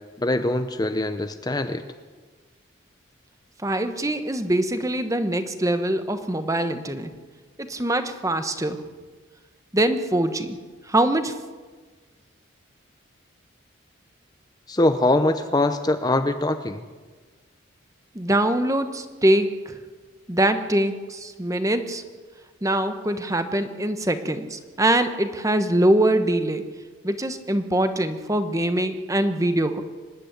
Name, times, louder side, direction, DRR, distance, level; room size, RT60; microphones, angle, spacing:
voice 1, 0.2-1.8 14.7-16.8, left 2 dB, 20° left, 9 dB, 0.7 m, -22 dB
voice 2, 3.6-7.1 7.6-8.8 9.7-10.6 10.9-11.3 18.1-19.8 20.3-22.0 22.6-26.7 27.0-29.8, right 1 dB, 15° right, 9 dB, 1.1 m, -23 dB
24.5 x 11.0 x 9.9 m, 1.4 s
head